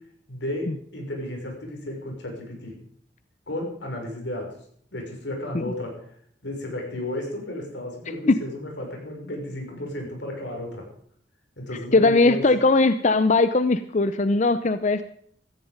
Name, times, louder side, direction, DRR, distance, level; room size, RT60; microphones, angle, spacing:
voice 1, 0.3-2.7 3.5-4.5 4.9-5.9 6.4-10.8 11.6-12.4, left 1 dB, 85° left, 2 dB, 6.1 m, -33 dB
voice 2, 11.9-15.0, left 3 dB, 40° left, 11 dB, 0.6 m, -19 dB
16.0 x 14.5 x 5.2 m, 0.64 s
head